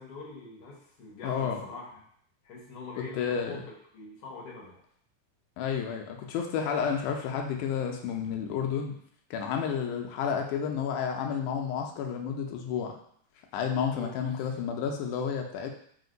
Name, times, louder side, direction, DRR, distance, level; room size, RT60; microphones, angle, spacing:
voice 1, 0.0-2.0 2.4-3.6 3.9-4.8 13.9-14.1 14.4-14.5, left 3 dB, 65° left, -4 dB, 0.9 m, -44 dB
voice 2, 1.2-1.6 3.1-3.6 5.6-9.0 9.3-12.9 13.5-15.7, left 7 dB, 80° left, 2 dB, 2.0 m, -31 dB
4.9 x 2.2 x 3.8 m, 0.63 s
omnidirectional pair, 3.5 m